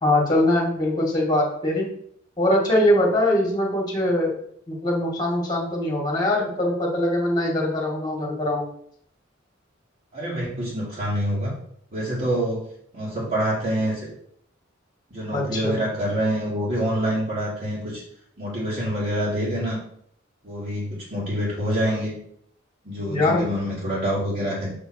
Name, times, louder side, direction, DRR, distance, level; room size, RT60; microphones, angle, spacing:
voice 1, 0.0-2.0 2.4-4.4 4.7-8.7 15.3-15.8 23.1-23.4, left 1 dB, 20° left, -1 dB, 2.0 m, -22 dB
voice 2, 10.1-11.5 11.9-12.6 12.9-14.1 15.1-18.0 18.4-19.8 20.4-22.2 22.8-24.7, equal, 50° right, -9 dB, 2.5 m, -26 dB
6.6 x 4.0 x 6.3 m, 0.66 s
head